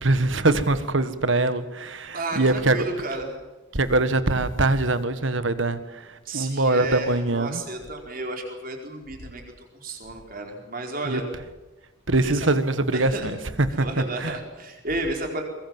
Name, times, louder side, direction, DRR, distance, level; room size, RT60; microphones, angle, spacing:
voice 1, 0.0-2.8 3.7-6.0 6.3-7.6 11.1-11.2 12.1-13.4 13.8-13.9 14.2-14.3, right 2 dB, 65° right, 12 dB, 1.6 m, -23 dB
voice 2, 2.1-3.4 6.2-9.4 9.7-11.3 12.2-12.5 12.9-13.3 13.7-15.4, right 2 dB, 45° right, 2 dB, 4.6 m, -32 dB
23.0 x 21.5 x 7.5 m, 1.1 s
head